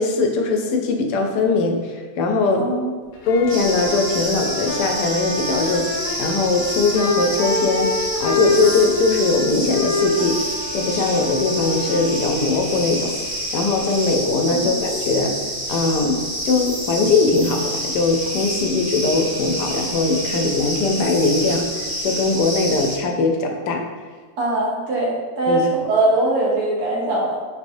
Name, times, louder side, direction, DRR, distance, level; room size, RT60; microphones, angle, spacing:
voice 1, 0.0-2.8 3.3-10.4 10.7-15.4 15.7-23.9 25.5-25.6, left 3 dB, 85° left, 3 dB, 1.2 m, -20 dB
voice 2, 2.5-2.9 14.5-14.7 24.4-27.4, right 2 dB, 75° right, -4 dB, 1.4 m, -21 dB
sound 1, 3.1-12.9, left 2 dB, 60° left, 0.8 m, -27 dB
sound 2, 3.5-23.0, equal, 35° right, 0.7 m, -28 dB
4.8 x 3.4 x 2.5 m, 1.5 s
omnidirectional pair, 1.8 m